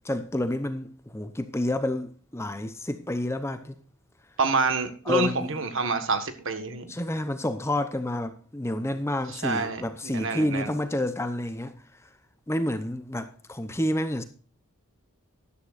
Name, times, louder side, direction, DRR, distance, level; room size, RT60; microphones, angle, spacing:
voice 1, 0.0-3.7 5.1-5.5 6.9-11.8 12.5-14.2, left 1 dB, 10° left, 0.7 m, -29 dB
voice 2, 4.4-7.0 9.3-10.7, right 3 dB, 60° right, 1.5 m, -27 dB
13.5 x 11.5 x 2.5 m
head